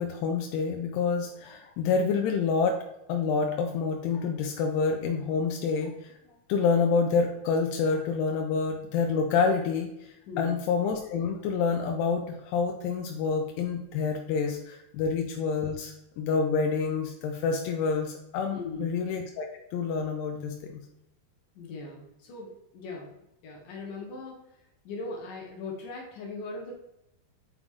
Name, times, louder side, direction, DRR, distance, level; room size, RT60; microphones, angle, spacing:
voice 1, 0.0-2.8 3.1-6.2 6.5-20.8, left 5 dB, 85° left, 3 dB, 2.7 m, -28 dB
voice 2, 10.3-10.6 18.5-18.9 21.6-23.2 23.4-26.7, left 3 dB, 65° left, 0 dB, 2.5 m, -39 dB
8.4 x 4.9 x 3.6 m, 0.86 s
omnidirectional pair, 4.6 m